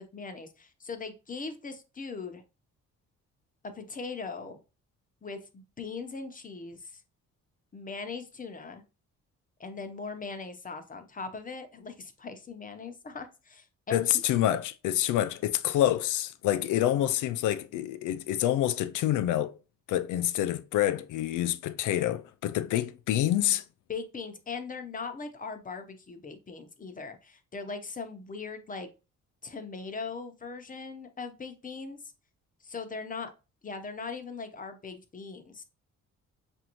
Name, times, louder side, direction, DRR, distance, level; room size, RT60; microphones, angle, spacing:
voice 1, 0.0-2.4 3.7-4.6 5.2-7.0 7.7-8.8 9.6-14.2 23.9-28.9 29.4-32.0 32.6-33.3 33.6-35.6, left 4 dB, 25° left, 0.8 m, -40 dB
voice 2, 13.9-19.5 19.9-23.6, left 12 dB, 85° left, 0.5 m, -27 dB
5.0 x 2.6 x 2.9 m
cardioid pair, 90°, 30 cm